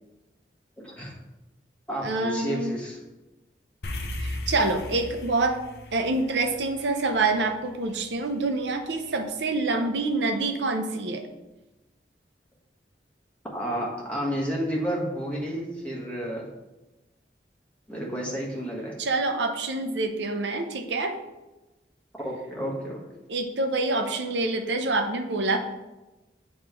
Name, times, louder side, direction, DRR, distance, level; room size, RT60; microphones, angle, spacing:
voice 1, 0.8-1.1 1.9-3.0 13.5-16.4 17.9-18.9 22.2-23.0, equal, 5° left, -4 dB, 1.3 m, -31 dB
voice 2, 2.0-2.8 4.2-5.6 5.9-11.2 19.0-21.2 23.3-25.6, right 3 dB, 80° right, 6 dB, 0.7 m, -26 dB
sound 1, 3.8-8.3, left 1 dB, 65° left, 0.7 m, -37 dB
7.3 x 3.2 x 4.6 m, 1.1 s
head